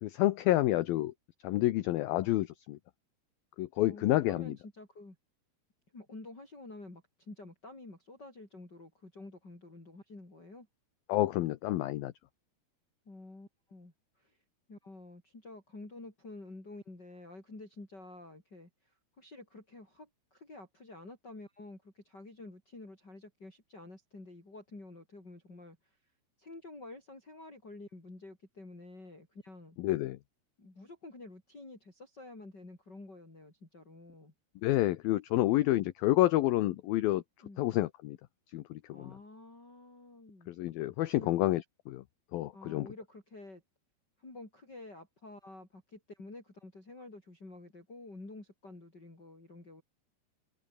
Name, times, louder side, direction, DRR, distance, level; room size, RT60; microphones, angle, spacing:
voice 1, 0.0-1.1 1.4-2.8 3.6-4.5 11.1-12.1 29.8-30.2 34.6-37.2 37.6-38.2 38.5-39.1 40.5-42.0 42.3-42.9, left 16 dB, 75° left, 2.3 m, -29 dB
voice 2, 3.8-5.2 5.9-10.7 13.0-14.4 14.7-26.0 26.4-29.8 30.6-34.3 37.4-37.6 38.9-40.5 41.1-41.3 42.5-43.6 44.2-49.8, left 2 dB, 20° left, 6.8 m, -50 dB
open air
omnidirectional pair, 5.1 m